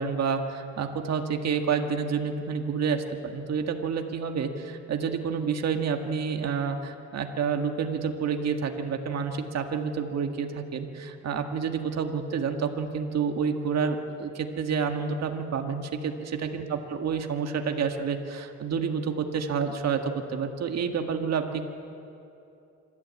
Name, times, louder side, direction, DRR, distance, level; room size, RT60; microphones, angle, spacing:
voice 1, 0.0-21.7, right 6 dB, 60° right, 5 dB, 1.8 m, -29 dB
26.0 x 13.0 x 8.8 m, 2.7 s
cardioid pair, 90°, 30 cm